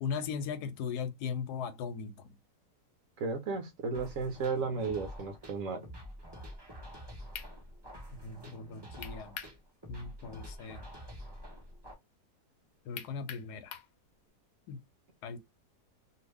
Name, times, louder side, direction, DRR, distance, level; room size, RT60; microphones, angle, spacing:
voice 1, 0.0-2.4 8.2-9.4 9.9-10.8 12.8-13.7 14.7-14.8 15.2-15.4, left 6 dB, 85° left, 1.2 m, -38 dB
voice 2, 3.2-5.8, right 4 dB, 65° right, 1.0 m, -34 dB
sound 1, 3.9-11.9, equal, 20° right, 0.9 m, -47 dB
sound 2, 7.3-7.5 9.0-9.6 10.0-10.1 13.0-13.9, left 8 dB, 70° left, 0.9 m, -43 dB
2.8 x 2.6 x 3.3 m
omnidirectional pair, 1.7 m